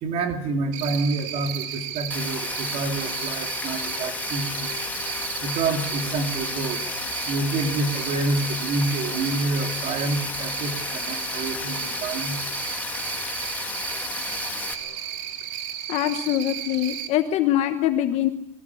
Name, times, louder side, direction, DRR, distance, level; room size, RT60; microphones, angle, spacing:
voice 1, 0.0-4.8 5.4-6.8 7.2-12.4, right 3 dB, 35° right, 5 dB, 3.0 m, -28 dB
Cricket, 0.7-17.1, right 10 dB, 60° right, 2.9 m, -34 dB
Rain, 2.1-14.7, left 4 dB, 10° left, 1.7 m, -33 dB
sound 1, 2.9-16.0, left 10 dB, 65° left, 3.0 m, -46 dB
voice 2, 15.9-18.3, left 12 dB, 35° left, 8 dB, 1.2 m, -23 dB
25.5 x 22.0 x 8.5 m, 0.74 s
supercardioid pair, 180°, 19 cm